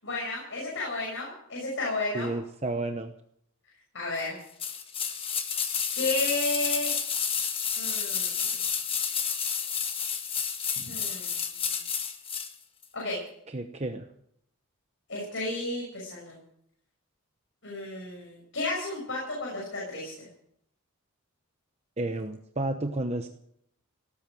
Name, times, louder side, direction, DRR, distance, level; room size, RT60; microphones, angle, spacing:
voice 1, 0.0-2.3 3.9-4.4 5.9-6.9 7.8-8.6 10.8-11.5 12.9-13.2 15.1-16.4 17.6-20.3, left 2 dB, 55° left, -3 dB, 6.6 m, -33 dB
voice 2, 2.1-3.1 13.5-14.1 22.0-23.3, right 2 dB, 30° right, 6 dB, 0.9 m, -31 dB
sound 1, 4.6-12.5 12.8-12.9, left 7 dB, 25° left, 1.5 m, -30 dB
18.0 x 8.9 x 9.1 m, 0.71 s
head